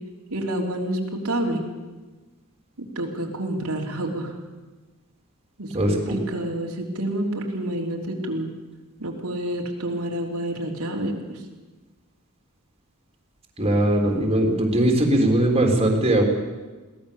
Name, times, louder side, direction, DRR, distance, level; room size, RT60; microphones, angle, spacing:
voice 1, 0.3-1.0 1.2-1.6 2.8-4.3 5.6-8.5 9.0-11.4, right 1 dB, 85° right, 0 dB, 3.3 m, -28 dB
voice 2, 5.7-6.2 13.6-16.2, right 1 dB, 25° right, 1 dB, 3.5 m, -20 dB
22.5 x 17.5 x 7.0 m, 1.2 s
head